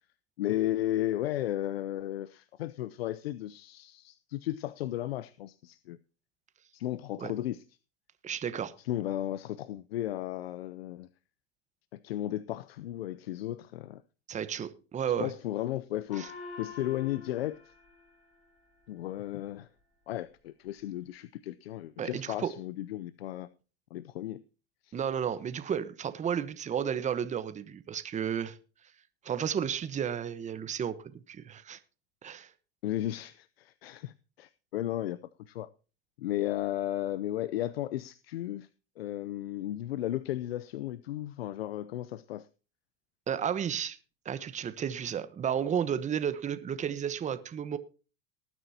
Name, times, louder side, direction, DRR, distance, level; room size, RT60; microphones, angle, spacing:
voice 1, 0.4-6.0 6.7-7.6 8.8-11.1 11.9-14.0 15.2-17.6 18.9-19.7 20.1-23.5 23.9-24.4 24.8-25.0 32.8-35.7 36.2-38.7 39.0-42.5, left 13 dB, 90° left, 0.6 m, -34 dB
voice 2, 8.2-8.7 14.3-15.3 16.2-16.3 22.0-22.5 24.9-28.6 29.2-31.8 32.2-32.5 43.3-44.0 44.2-47.8, right 8 dB, 25° right, 1.1 m, -32 dB
Gong, 16.1-19.0, left 5 dB, 60° left, 5.9 m, -47 dB
19.5 x 9.2 x 2.8 m
supercardioid pair, 110°, 29 cm